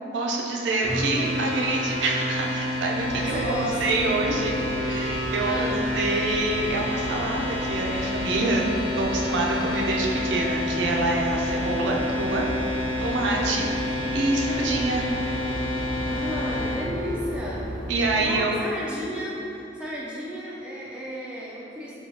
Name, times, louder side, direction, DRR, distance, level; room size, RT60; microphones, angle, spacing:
voice 1, 0.1-8.6 9.0-12.5 13.0-13.7 14.1-15.1 17.9-18.6, right 2 dB, 80° right, -1 dB, 0.4 m, -26 dB
sound 1, 0.8-16.9, left 1 dB, 10° left, 0.8 m, -29 dB
sound 2, 2.9-18.4, equal, 65° left, 1.0 m, -36 dB
voice 2, 3.1-4.1 5.4-5.8 8.4-8.6 12.9-13.6 16.1-21.9, equal, 5° right, -7 dB, 0.3 m, -33 dB
4.3 x 2.3 x 2.7 m, 2.9 s
head